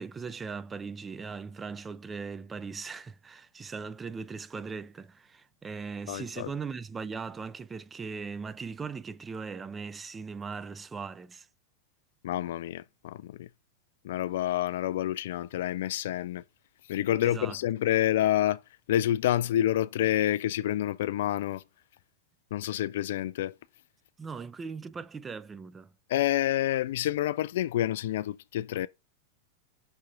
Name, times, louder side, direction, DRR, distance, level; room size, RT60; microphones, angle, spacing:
voice 1, 0.0-11.5 17.2-17.6 24.2-25.9, right 5 dB, 15° right, 0.5 m, -39 dB
voice 2, 6.1-6.5 12.2-13.5 14.0-16.4 16.9-18.6 18.9-21.6 22.5-23.5 26.1-28.9, left 13 dB, 55° left, 0.3 m, -28 dB
6.0 x 3.7 x 5.2 m
figure-of-eight pair, 90°, 0 cm